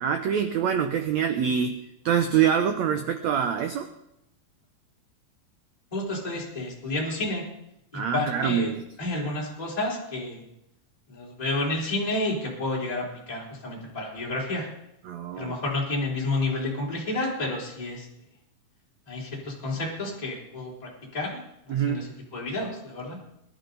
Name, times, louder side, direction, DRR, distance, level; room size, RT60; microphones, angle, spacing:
voice 1, 0.0-3.9 7.9-8.8 15.0-15.6 21.7-22.1, right 8 dB, 85° right, 7 dB, 1.5 m, -25 dB
voice 2, 5.9-7.4 7.9-8.7 9.0-10.4 11.1-14.7 15.4-18.1 19.1-21.4 21.7-22.1 22.3-23.2, left 2 dB, 10° left, -4 dB, 3.5 m, -30 dB
22.0 x 11.5 x 4.0 m, 0.83 s
omnidirectional pair, 4.2 m